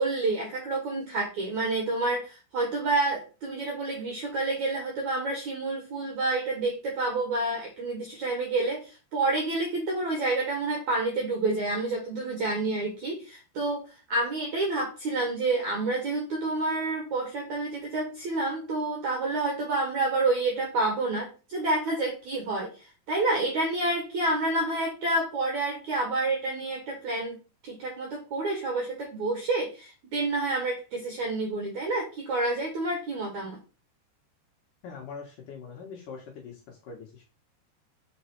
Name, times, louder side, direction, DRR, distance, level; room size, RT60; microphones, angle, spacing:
voice 1, 0.0-22.7 23.1-27.4 27.6-33.6, right 2 dB, 65° right, 1 dB, 2.0 m, -29 dB
voice 2, 34.8-36.5 36.9-37.2, left 5 dB, 60° left, -1 dB, 2.4 m, -42 dB
7.3 x 4.6 x 4.4 m, 0.34 s
omnidirectional pair, 5.1 m